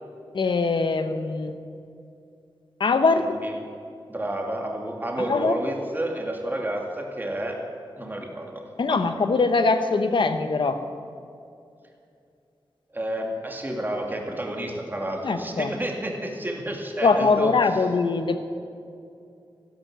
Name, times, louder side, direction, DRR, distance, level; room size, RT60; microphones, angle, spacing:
voice 1, 0.3-1.5 2.8-3.3 5.3-5.6 8.8-10.8 15.2-15.7 17.0-18.4, left 4 dB, 65° left, 8 dB, 1.1 m, -22 dB
voice 2, 3.2-3.5 4.1-7.6 8.0-9.1 12.9-17.5, right 1 dB, 20° right, 1 dB, 2.4 m, -30 dB
15.0 x 12.5 x 7.6 m, 2.5 s
wide cardioid pair, 120°, 9 cm